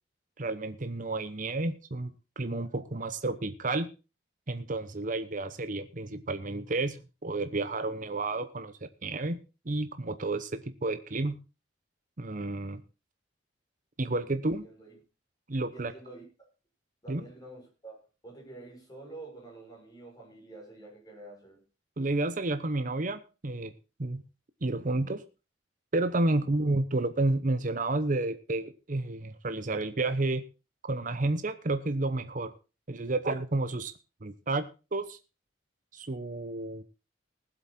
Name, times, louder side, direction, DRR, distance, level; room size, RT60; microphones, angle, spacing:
voice 1, 0.4-3.9 4.5-11.4 12.2-12.8 14.0-14.7 15.5-15.9 17.1-17.2 22.0-23.7 24.0-24.2 24.6-25.2 25.9-30.4 30.8-32.5 32.9-33.9 34.2-35.2 35.9-36.8, right 2 dB, 45° right, 0.9 m, -31 dB
voice 2, 14.6-14.9 15.7-16.2 17.0-21.6 26.3-26.5, right 2 dB, 20° left, 6.4 m, -48 dB
19.0 x 8.0 x 4.3 m
head